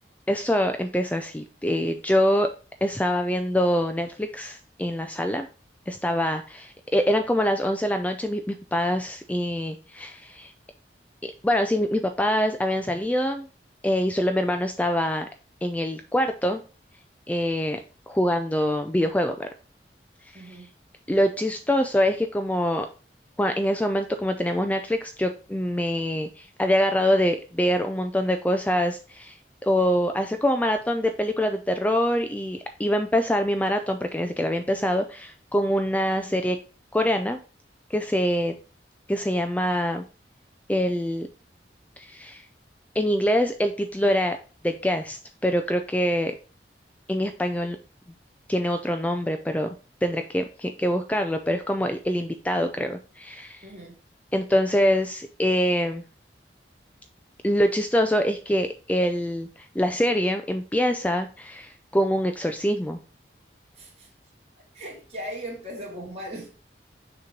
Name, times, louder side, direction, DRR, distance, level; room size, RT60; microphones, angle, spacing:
voice 1, 0.3-2.5 2.8-5.5 5.9-10.5 11.2-13.5 13.8-15.3 15.6-16.6 17.3-17.8 18.1-19.5 21.1-22.9 23.4-29.4 29.6-36.6 36.9-37.4 37.9-38.5 39.1-40.0 40.7-41.3 42.0-42.5 42.9-44.4 44.6-46.3 47.1-47.8 48.5-49.7 50.0-53.6 54.3-56.0 57.4-63.0, equal, 10° left, 0.4 m, -24 dB
voice 2, 20.3-20.7 36.2-36.5 53.6-54.0 63.8-64.1 64.6-66.5, equal, 35° right, 2.5 m, -38 dB
6.6 x 3.0 x 5.1 m
head